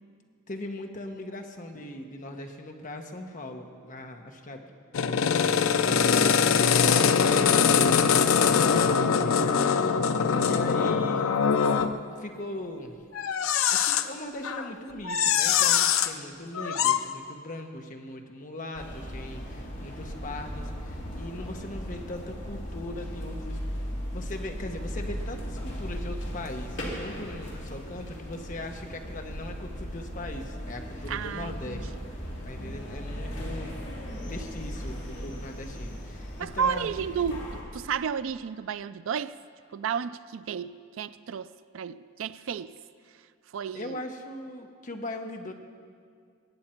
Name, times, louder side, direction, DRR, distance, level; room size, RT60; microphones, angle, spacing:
voice 1, 0.5-4.8 5.1-9.6 9.9-11.4 12.2-13.0 13.7-23.6 24.1-31.9 32.4-33.7 34.3-36.9 43.7-45.5, left 1 dB, 40° left, 1.0 m, -40 dB
sound 1, 4.9-12.0 13.2-14.1 14.4-14.7 15.0-16.1 16.5-17.0, left 6 dB, 85° left, 0.5 m, -22 dB
sound 2, 18.7-37.6, equal, 60° left, 2.5 m, -37 dB
voice 2, 31.1-31.8 36.4-39.4 39.7-42.8 43.5-44.0, right 7 dB, 75° right, 0.4 m, -32 dB
21.0 x 8.7 x 4.4 m
head